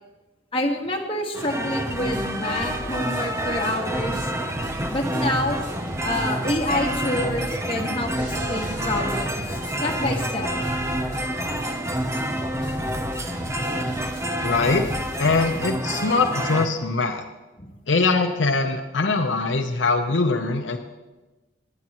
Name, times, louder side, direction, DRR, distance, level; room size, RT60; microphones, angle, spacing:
voice 1, 0.5-4.3 4.9-5.6 6.0-9.4 9.8-10.5 15.5-15.6 17.6-17.7, left 1 dB, 30° left, 0 dB, 1.6 m, -27 dB
sound 1, 1.3-16.7, right 1 dB, 15° right, 0.7 m, -28 dB
sound 2, 1.9-15.7, equal, 70° right, 4.3 m, -38 dB
voice 2, 14.4-14.9 15.2-17.2 17.9-20.8, left 3 dB, 80° left, 4 dB, 0.8 m, -22 dB
18.5 x 11.0 x 3.0 m, 1.1 s
head